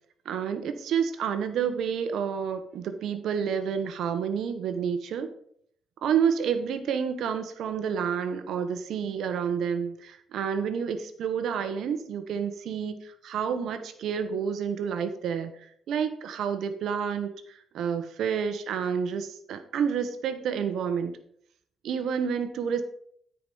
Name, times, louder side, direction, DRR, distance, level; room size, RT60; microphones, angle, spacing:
voice 1, 0.2-5.3 6.0-21.1 21.8-22.8, right 7 dB, 75° right, 9 dB, 1.1 m, -29 dB
9.6 x 5.0 x 5.5 m, 0.65 s
cardioid pair, 90°, 0 cm